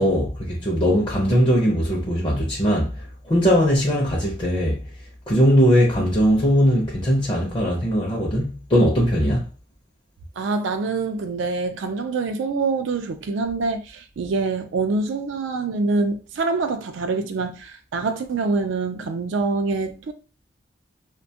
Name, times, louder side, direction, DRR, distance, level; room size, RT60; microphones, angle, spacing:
voice 1, 0.0-2.9 3.2-4.8 5.3-9.4, equal, 25° left, 0.5 m, -19 dB
voice 2, 10.4-20.1, right 3 dB, 80° right, 0.4 m, -25 dB
2.5 x 2.2 x 2.7 m
head